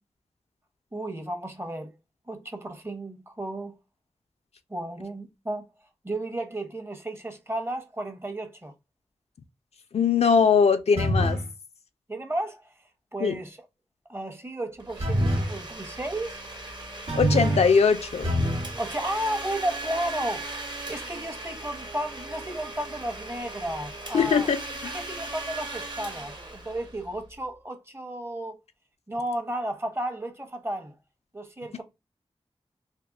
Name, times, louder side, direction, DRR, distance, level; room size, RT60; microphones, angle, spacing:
voice 1, 0.9-1.9 2.3-3.8 4.7-5.7 6.0-8.7 12.1-12.6 13.1-13.6 14.1-16.4 18.8-24.5 24.9-28.6 29.1-30.9 31.3-31.8, right 1 dB, 20° right, 0.7 m, -33 dB
voice 2, 9.9-11.4 13.2-13.3 17.2-18.3 24.1-24.6, left 6 dB, 75° left, 0.4 m, -21 dB
sound 1, 11.0-11.5 15.0-15.6 17.1-17.7 18.2-18.8, equal, 80° right, 0.9 m, -25 dB
Domestic sounds home sounds, 14.8-27.4, right 2 dB, 45° right, 0.9 m, -38 dB
3.5 x 2.3 x 2.3 m
wide cardioid pair, 70°, 11 cm